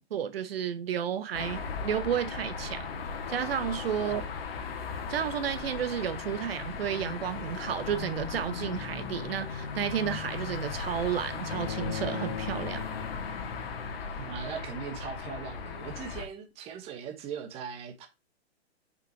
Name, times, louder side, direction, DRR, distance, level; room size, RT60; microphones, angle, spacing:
voice 1, 0.0-2.9 3.3-4.2 5.1-12.9, right 9 dB, 60° right, 1.0 m, -32 dB
sound 1, 1.3-16.3, left 5 dB, 60° left, 1.6 m, -37 dB
Bowed string instrument, 11.5-14.5, left 8 dB, 45° left, 1.3 m, -39 dB
voice 2, 14.0-18.1, right 7 dB, 20° right, 1.1 m, -40 dB
6.3 x 5.3 x 4.5 m
hypercardioid pair, 150°, 33 cm